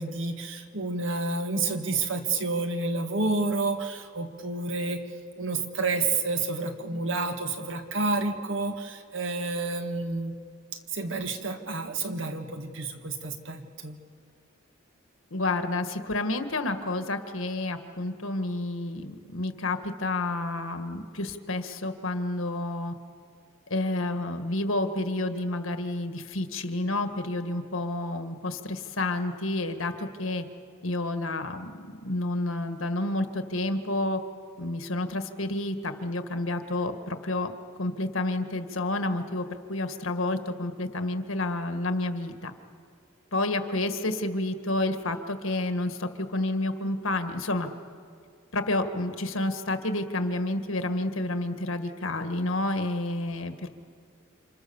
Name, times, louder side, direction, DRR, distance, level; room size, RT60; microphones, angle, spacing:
voice 1, 0.0-5.1 5.4-10.3 10.9-14.0, right 3 dB, 65° right, 5 dB, 1.9 m, -29 dB
voice 2, 15.3-22.9 23.7-30.5 30.8-34.2 34.6-37.5 37.8-42.5 43.3-47.7 48.5-53.7, left 2 dB, 75° left, 8 dB, 1.7 m, -30 dB
29.5 x 26.5 x 7.1 m, 2.3 s
head